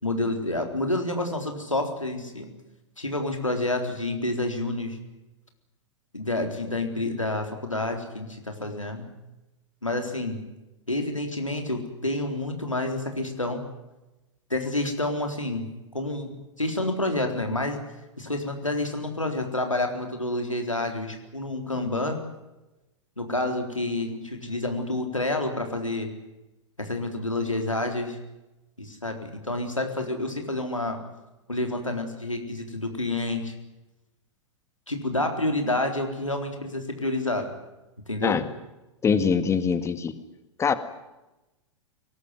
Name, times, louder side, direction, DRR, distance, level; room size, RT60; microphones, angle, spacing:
voice 1, 0.0-2.5 3.0-5.0 6.1-9.1 9.8-10.4 10.9-13.6 14.5-15.7 15.9-16.3 16.6-17.8 18.2-22.2 23.2-26.1 26.8-28.2 28.8-31.0 31.5-33.5 34.9-37.5 38.1-38.4, left 2 dB, 85° left, 4 dB, 3.9 m, -28 dB
voice 2, 39.0-40.1 40.6-40.7, left 6 dB, 15° left, 12 dB, 1.9 m, -23 dB
23.0 x 19.5 x 9.6 m, 1.0 s
figure-of-eight pair, 100°, 16 cm